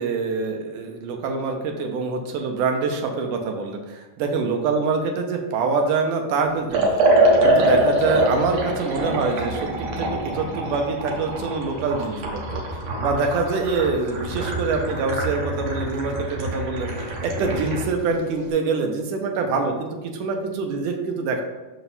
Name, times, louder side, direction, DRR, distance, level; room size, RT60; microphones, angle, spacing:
voice 1, 0.0-7.0 7.4-21.4, right 4 dB, 85° right, 4 dB, 2.4 m, -25 dB
Liquid, 6.7-17.9, right 1 dB, 70° right, 2.3 m, -24 dB
6.1 x 5.4 x 4.1 m, 1.2 s
omnidirectional pair, 3.6 m